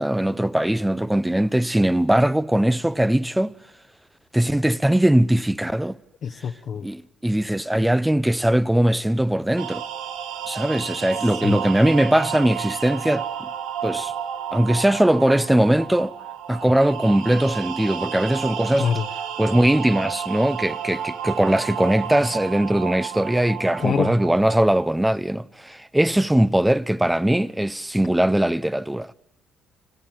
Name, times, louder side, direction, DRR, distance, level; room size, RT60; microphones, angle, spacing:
voice 1, 0.0-3.5 4.3-6.0 6.8-9.8 10.5-13.5 13.8-14.1 14.5-16.1 16.5-18.9 19.4-29.1, right 1 dB, 5° right, 0.8 m, -20 dB
voice 2, 6.2-6.8 11.4-11.6 18.8-19.0 23.8-24.1, left 7 dB, 60° left, 1.1 m, -24 dB
sound 1, 9.6-24.9, right 9 dB, 85° right, 1.5 m, -32 dB
30.0 x 18.5 x 7.9 m
supercardioid pair, 65°, 0 cm